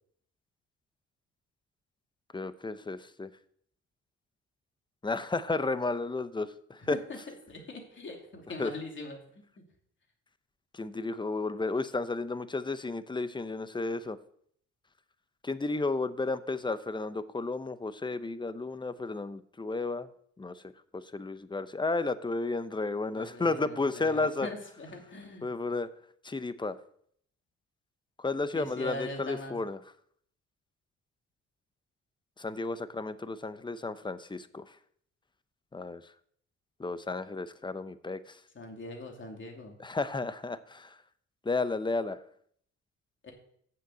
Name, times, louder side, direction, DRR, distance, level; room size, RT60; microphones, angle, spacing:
voice 1, 2.3-3.3 5.0-7.0 8.6-8.7 10.7-14.2 15.4-20.1 20.4-20.6 20.9-24.5 25.4-25.9 26.2-26.8 28.2-29.8 32.4-34.6 35.7-36.0 36.8-38.4 39.8-40.9 41.4-42.2, left 3 dB, 15° left, 13 dB, 0.7 m, -32 dB
voice 2, 6.9-9.4 23.1-25.5 28.5-29.5 38.5-39.7 43.2-43.3, left 2 dB, 40° left, 1 dB, 2.9 m, -41 dB
7.5 x 6.7 x 8.0 m, 0.65 s
cardioid pair, 90°, 30 cm